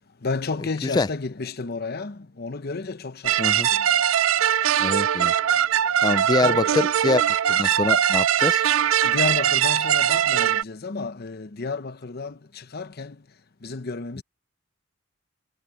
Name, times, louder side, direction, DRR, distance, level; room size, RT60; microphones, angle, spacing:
voice 1, 0.2-3.8 6.4-6.9 9.0-13.2 13.6-14.2, left 3 dB, 50° left, 0.8 m, -32 dB
sound 1, 3.2-10.6, right 10 dB, 85° right, 0.4 m, -21 dB
voice 2, 3.4-3.7 4.8-5.3 6.0-7.2 7.5-8.6, left 3 dB, 20° left, 0.3 m, -24 dB
head